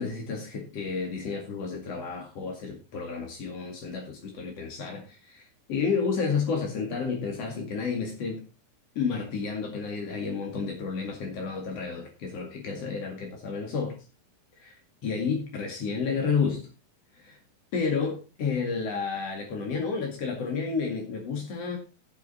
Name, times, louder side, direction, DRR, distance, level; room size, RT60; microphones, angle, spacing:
voice 1, 0.0-8.4 9.0-14.0 14.6-16.7 17.1-17.4 17.7-21.8, left 5 dB, 50° left, 1 dB, 2.0 m, -31 dB
15.5 x 6.3 x 4.2 m, 0.33 s
omnidirectional pair, 6.0 m